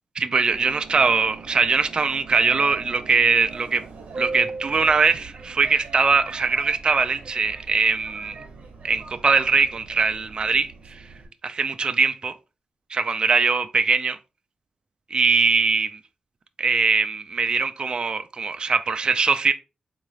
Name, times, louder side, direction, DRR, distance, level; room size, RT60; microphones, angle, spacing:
voice 1, 0.2-3.8 4.2-8.4 8.8-11.0 11.4-12.3 12.9-14.2 15.1-16.0 16.6-19.5, right 4 dB, 45° right, 0.3 m, -21 dB
Subway metro underground, 0.5-11.3, right 3 dB, 85° right, 0.9 m, -40 dB
3.8 x 2.5 x 3.0 m
wide cardioid pair, 95°, 2 cm